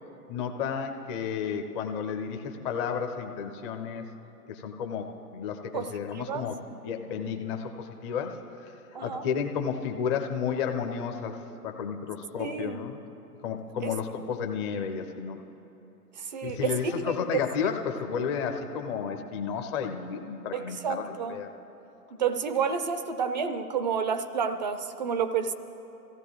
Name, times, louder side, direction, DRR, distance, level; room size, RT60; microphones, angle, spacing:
voice 1, 0.3-4.0 4.5-8.4 8.6-8.7 9.0-13.0 13.4-15.4 16.4-21.5, left 7 dB, 20° left, 4 dB, 0.5 m, -32 dB
voice 2, 5.7-6.4 8.9-9.2 12.4-12.8 13.8-13.9 16.2-17.4 20.5-21.4 22.2-25.5, right 6 dB, 30° right, 10 dB, 0.4 m, -30 dB
25.0 x 15.5 x 2.3 m, 3.0 s
figure-of-eight pair, 120°, 48 cm